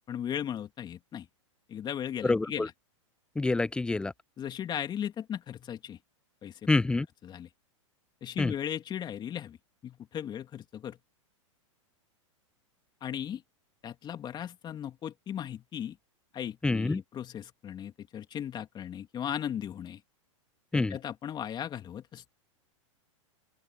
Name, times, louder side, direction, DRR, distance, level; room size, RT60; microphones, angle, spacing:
voice 1, 0.1-1.3 1.7-2.7 4.4-6.0 6.4-6.7 7.2-7.5 8.2-9.6 9.8-11.0 13.0-13.4 13.8-16.0 16.3-20.0 20.7-22.2, left 9 dB, 25° left, 2.7 m, -37 dB
voice 2, 2.2-2.7 3.4-4.1 6.7-7.1 8.4-8.5 16.6-17.0 20.7-21.0, left 3 dB, 5° left, 0.3 m, -26 dB
open air
hypercardioid pair, 115°, 17 cm